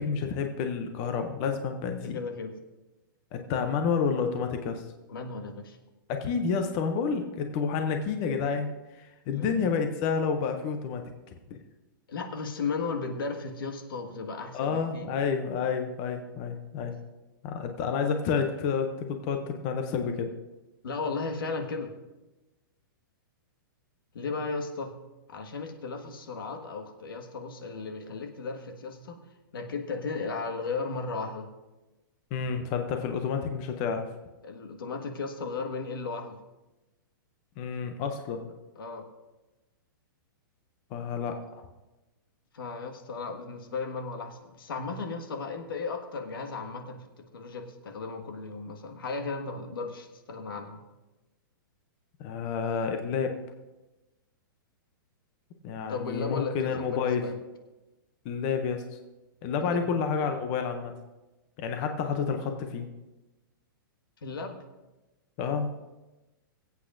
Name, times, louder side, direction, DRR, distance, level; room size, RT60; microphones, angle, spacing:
voice 1, 0.0-2.2 3.3-4.8 6.1-11.0 11.5-11.6 14.5-16.9 17.4-20.3 32.3-34.1 37.6-38.5 40.9-41.4 52.2-53.4 55.6-57.2 58.2-58.8 59.4-60.9 61.6-62.9 65.4-65.7, left 6 dB, 20° left, 6 dB, 0.5 m, -29 dB
voice 2, 2.1-2.5 5.1-5.8 9.3-9.7 12.1-15.1 20.8-21.9 24.1-24.9 25.3-29.2 29.5-31.5 34.4-36.4 38.8-39.0 42.5-50.8 55.9-57.4 59.6-59.9 64.2-64.6, left 4 dB, 80° left, 5 dB, 1.6 m, -35 dB
22.5 x 8.2 x 2.5 m, 1.1 s
hypercardioid pair, 180°, 12 cm